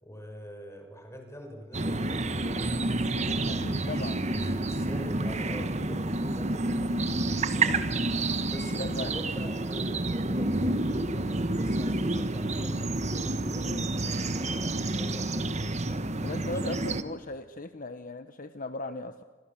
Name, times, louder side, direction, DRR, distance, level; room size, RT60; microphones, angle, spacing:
voice 1, 0.0-2.7 3.4-7.0 8.5-17.0, equal, 15° left, 4 dB, 6.0 m, -45 dB
sound 1, 1.7-17.0, right 2 dB, 40° right, 1.5 m, -29 dB
voice 2, 3.5-4.2 7.5-7.9 8.8-9.1 13.6-13.9 16.2-19.2, left 2 dB, 50° left, 9 dB, 1.2 m, -38 dB
29.5 x 25.5 x 7.4 m, 1.4 s
head